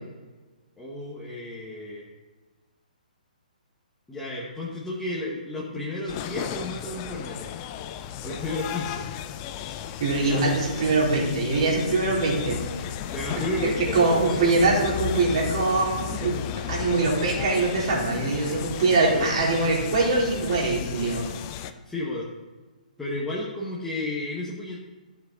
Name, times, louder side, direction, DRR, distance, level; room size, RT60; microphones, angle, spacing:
voice 1, 0.8-2.1 4.1-7.5 8.2-9.0 10.2-10.5 13.1-14.9 19.1-19.3 21.8-22.3 23.0-24.8, left 1 dB, 5° left, -7 dB, 1.5 m, -33 dB
sound 1, 6.1-21.7, left 10 dB, 25° left, 0.6 m, -34 dB
voice 2, 10.0-12.6 13.3-13.4 13.9-16.3 16.7-21.2, right 3 dB, 45° right, -3 dB, 3.7 m, -23 dB
14.5 x 7.3 x 4.0 m, 1.2 s
figure-of-eight pair, 125°, 5 cm